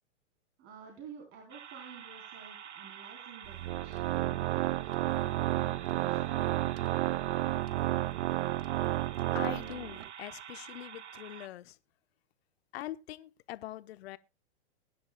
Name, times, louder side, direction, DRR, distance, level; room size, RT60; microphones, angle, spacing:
voice 1, 0.6-6.5, right 6 dB, 35° right, 3.9 m, -52 dB
sound 1, 1.5-11.5, right 8 dB, 85° right, 1.4 m, -48 dB
Organ, 3.4-10.1, right 15 dB, 60° right, 0.7 m, -31 dB
voice 2, 9.3-11.8 12.7-14.2, left 14 dB, 65° left, 1.0 m, -43 dB
21.0 x 10.5 x 2.2 m
hypercardioid pair, 125°, 34 cm